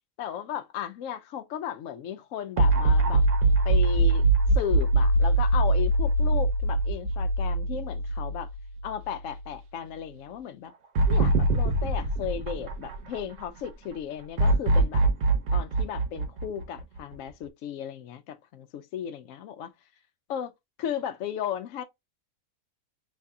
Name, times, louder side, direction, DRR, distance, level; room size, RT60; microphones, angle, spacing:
voice 1, 0.2-3.2 3.6-4.2 4.5-8.5 8.8-10.7 11.1-15.0 15.5-19.7 20.3-20.5 20.8-21.8, left 9 dB, 70° left, 0.9 m, -35 dB
sound 1, 2.6-8.9 9.3-9.4 11.0-13.4 14.4-17.1, right 2 dB, 60° right, 1.2 m, -23 dB
3.3 x 2.7 x 3.5 m
omnidirectional pair, 1.5 m